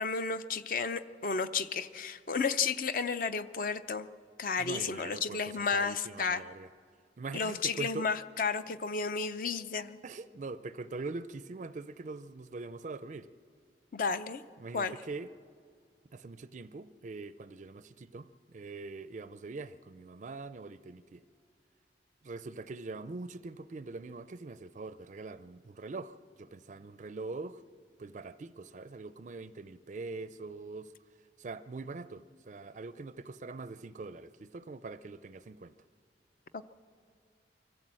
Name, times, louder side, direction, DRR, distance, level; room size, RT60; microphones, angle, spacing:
voice 1, 0.0-4.1 4.4-6.4 7.3-10.0 13.9-14.4 14.7-14.9, left 5 dB, 50° left, 0.6 m, -32 dB
voice 2, 4.6-6.7 7.2-8.1 10.0-13.3 14.6-15.3 16.1-21.2 22.2-27.6 28.0-30.9 31.4-35.7, right 3 dB, 40° right, 0.4 m, -43 dB
24.0 x 15.0 x 7.6 m
head